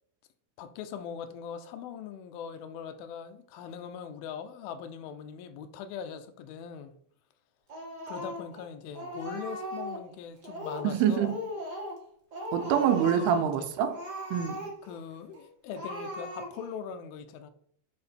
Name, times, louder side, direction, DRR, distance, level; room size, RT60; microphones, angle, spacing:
voice 1, 0.6-6.9 8.1-11.4 13.0-13.7 14.8-17.5, left 7 dB, 80° left, 2.3 m, -41 dB
Speech, 7.7-8.6 8.9-10.1 10.4-10.9 11.2-12.0 12.3-13.5 13.9-15.0 15.3-15.4 15.7-16.8, equal, 50° right, 1.2 m, -38 dB
voice 2, 10.8-11.3 12.5-14.0 14.3-14.6, right 9 dB, 85° right, 2.7 m, -25 dB
8.6 x 4.5 x 4.3 m
omnidirectional pair, 4.6 m